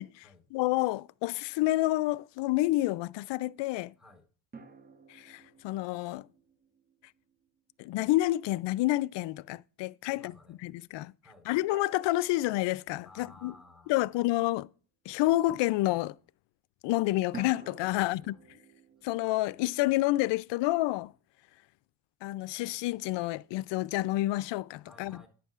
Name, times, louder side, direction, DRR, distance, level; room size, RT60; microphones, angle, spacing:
voice 1, 0.0-3.9 5.1-6.2 7.8-10.3 10.6-11.1 11.5-13.5 13.9-14.7 15.1-16.1 16.8-18.3 19.0-21.1 22.2-25.2, left 17 dB, 65° left, 0.5 m, -29 dB
voice 2, 4.0-4.3 10.0-10.6 11.2-11.5 13.0-14.2 17.9-18.2 24.8-25.3, left 2 dB, ahead, 4.1 m, -55 dB
sound 1, 4.5-7.9 11.7-13.7 17.3-20.4, right 4 dB, 20° right, 1.0 m, -52 dB
11.0 x 8.6 x 2.4 m
supercardioid pair, 85°, 46 cm